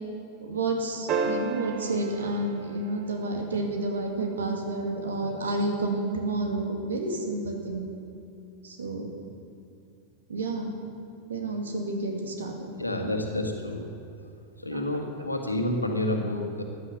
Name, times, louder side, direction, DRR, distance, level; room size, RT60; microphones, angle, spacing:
voice 1, 0.4-7.9 8.6-9.1 10.3-10.7 11.3-12.5 14.7-14.8, right 2 dB, 70° right, 3 dB, 2.3 m, -30 dB
sound 1, 1.1-3.6 5.8-5.9, right 4 dB, 35° right, 1.2 m, -32 dB
voice 2, 12.7-13.9 14.6-16.6, left 1 dB, 85° left, 3 dB, 1.9 m, -29 dB
14.5 x 11.0 x 6.9 m, 2.8 s
figure-of-eight pair, 90°, 0 cm